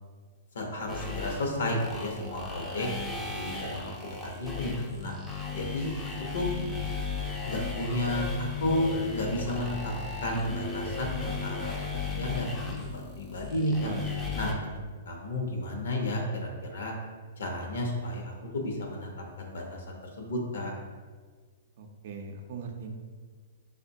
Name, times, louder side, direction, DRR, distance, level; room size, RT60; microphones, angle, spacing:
voice 1, 0.5-2.9 3.3-5.1 5.5-5.9 6.3-6.5 7.4-9.9 10.2-13.9 14.3-14.8 15.1-16.9 17.4-20.7, left 1 dB, 80° left, 1 dB, 0.6 m, -32 dB
sound 1, 0.9-14.5, left 5 dB, 10° left, 0.4 m, -36 dB
voice 2, 13.8-14.4 14.7-14.8 21.8-22.9, right 3 dB, 55° right, 3 dB, 0.5 m, -40 dB
5.0 x 2.1 x 2.6 m, 1.5 s
hypercardioid pair, 145°, 0 cm